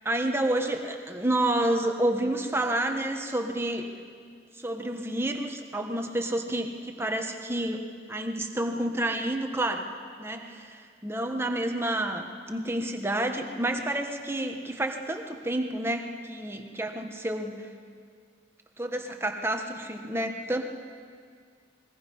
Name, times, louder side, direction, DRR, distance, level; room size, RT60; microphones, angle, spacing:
voice 1, 0.0-3.9 4.5-9.9 10.2-17.7 18.8-20.6, right 1 dB, 15° right, 4 dB, 1.4 m, -29 dB
27.5 x 21.0 x 5.5 m, 2.1 s
head